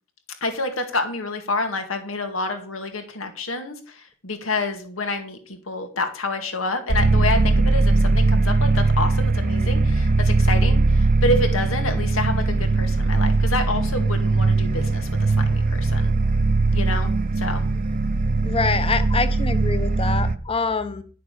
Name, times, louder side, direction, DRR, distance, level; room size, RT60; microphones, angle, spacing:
voice 1, 0.4-16.1 16.7-17.7, left 2 dB, 85° left, 6 dB, 2.1 m, -28 dB
sound 1, 6.9-20.4, right 3 dB, 45° right, 0.8 m, -20 dB
voice 2, 18.4-21.0, left 4 dB, 30° left, 11 dB, 1.1 m, -25 dB
11.5 x 6.7 x 6.7 m, 0.41 s
head